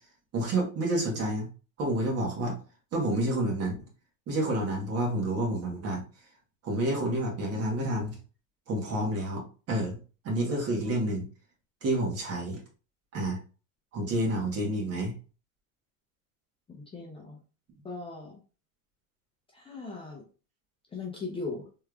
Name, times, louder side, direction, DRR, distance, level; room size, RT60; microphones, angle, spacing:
voice 1, 0.3-1.5 1.8-2.6 2.9-3.7 4.3-6.0 6.6-8.2 8.7-9.4 9.7-10.0 10.2-11.3 11.8-12.6 13.1-13.4 13.9-15.1, right 1 dB, 40° right, -1 dB, 1.5 m, -29 dB
voice 2, 16.7-17.4 17.8-18.4 19.5-20.2 20.9-21.6, left 3 dB, 15° left, -1 dB, 0.6 m, -38 dB
3.5 x 3.1 x 2.3 m, 0.36 s
supercardioid pair, 130°, 39 cm